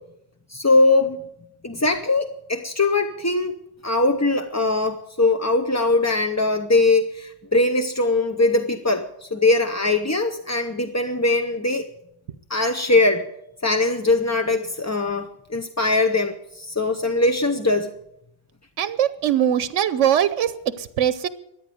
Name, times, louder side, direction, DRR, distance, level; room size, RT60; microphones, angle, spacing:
voice 1, 0.5-1.2 1.6-3.6 3.8-11.9 12.5-13.2 13.6-17.9, left 2 dB, 20° left, 6 dB, 0.5 m, -21 dB
voice 2, 18.8-20.5 20.8-21.3, right 10 dB, 90° right, 14 dB, 1.1 m, -21 dB
14.0 x 10.0 x 9.1 m, 0.81 s
omnidirectional pair, 1.2 m